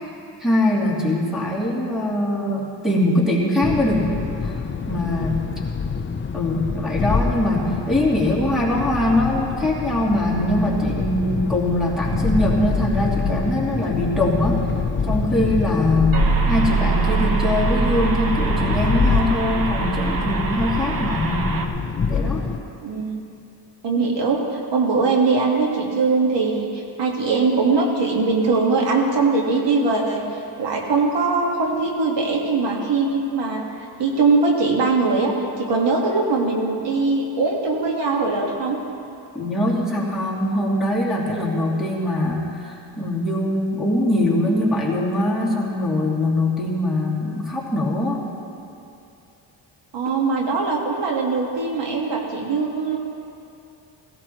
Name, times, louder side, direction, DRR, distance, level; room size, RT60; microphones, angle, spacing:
voice 1, 0.4-4.2 4.4-4.5 4.9-5.5 6.3-14.6 15.1-21.6 22.1-22.4 39.3-48.3, left 1 dB, ahead, -5 dB, 2.9 m, -22 dB
sound 1, 3.6-22.6, left 5 dB, 25° left, 0.5 m, -26 dB
sound 2, 16.1-21.7, right 4 dB, 50° right, 1.1 m, -23 dB
voice 2, 22.8-23.2 23.8-33.6 34.0-35.3 35.6-38.8 49.9-53.0, right 3 dB, 70° right, -1 dB, 1.9 m, -21 dB
17.0 x 16.5 x 3.1 m, 2.7 s
cardioid pair, 110°, 44 cm